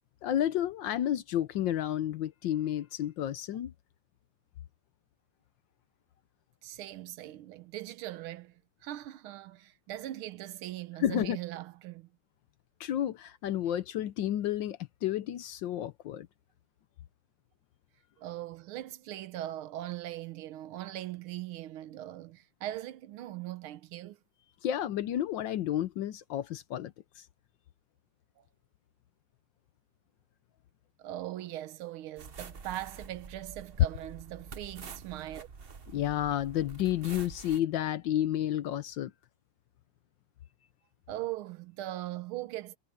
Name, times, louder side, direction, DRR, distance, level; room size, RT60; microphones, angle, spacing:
voice 1, 0.2-3.7 11.0-11.4 12.8-16.3 24.6-27.2 35.9-39.1, left 11 dB, 70° left, 1.2 m, -31 dB
voice 2, 6.6-12.1 18.2-24.2 28.4-28.5 31.0-35.5 41.1-42.8, right 14 dB, 80° right, 1.6 m, -40 dB
sound 1, 32.2-37.6, right 5 dB, 40° right, 0.9 m, -47 dB
omnidirectional pair, 2.4 m